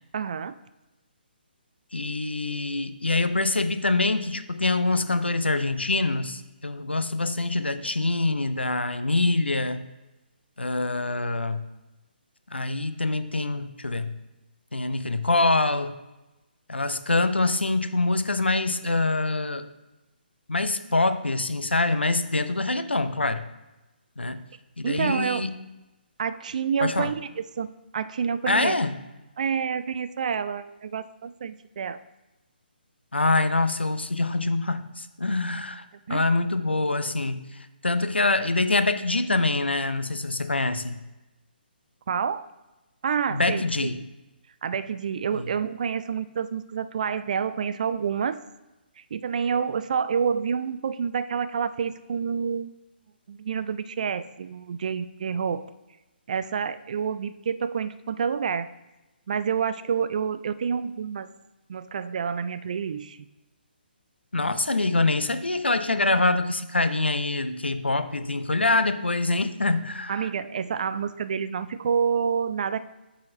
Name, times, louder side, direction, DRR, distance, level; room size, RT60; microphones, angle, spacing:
voice 1, 0.1-0.5 24.8-25.5 26.2-28.8 29.4-32.0 36.1-36.2 42.1-42.5 43.0-43.9 44.6-48.4 49.1-52.8 53.3-55.6 56.3-58.7 59.3-61.3 61.7-63.2 70.1-72.8, right 6 dB, 45° right, 14 dB, 0.3 m, -28 dB
voice 2, 1.9-9.8 10.6-11.6 12.5-14.1 14.7-15.9 16.7-19.7 20.5-23.4 24.2-24.4 24.8-25.5 26.8-27.1 28.5-28.9 33.1-35.8 36.1-41.0 43.3-44.0 64.3-70.3, left 2 dB, 85° left, 10 dB, 0.5 m, -25 dB
6.3 x 4.1 x 4.1 m, 1.0 s
figure-of-eight pair, 140°, 6 cm